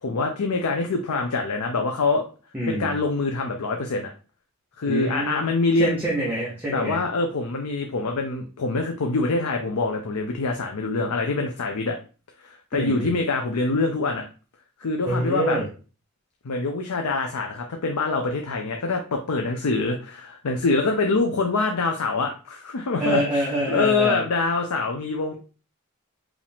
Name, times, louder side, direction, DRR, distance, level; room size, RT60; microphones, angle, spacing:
voice 1, 0.0-2.3 2.7-4.1 4.8-6.0 6.7-12.0 12.4-14.2 14.8-15.6 16.4-25.3, left 3 dB, 90° left, 3 dB, 0.6 m, -25 dB
voice 2, 2.5-2.9 4.8-5.4 5.8-7.0 12.7-13.1 15.0-15.7 23.0-24.2, right 1 dB, 10° right, -7 dB, 0.9 m, -26 dB
4.9 x 2.5 x 3.5 m, 0.36 s
head